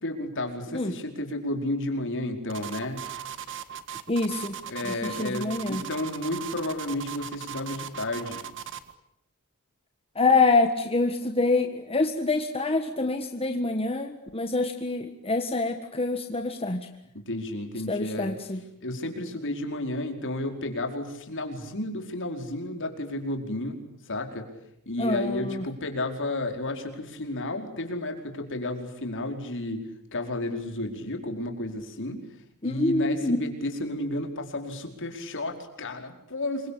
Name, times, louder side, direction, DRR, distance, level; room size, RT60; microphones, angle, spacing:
voice 1, 0.0-3.1 4.7-8.4 17.3-18.4 18.8-24.5 24.8-29.8 30.1-32.2 32.6-36.7, left 1 dB, 60° left, 4 dB, 4.9 m, -32 dB
sound 1, 2.5-8.9, right 9 dB, 60° right, 1.9 m, -38 dB
voice 2, 4.1-4.5 4.9-5.8 10.1-16.9 17.9-18.6 25.0-25.6 32.6-33.4, left 3 dB, 25° left, 6 dB, 1.6 m, -26 dB
27.5 x 24.0 x 8.6 m, 0.80 s
head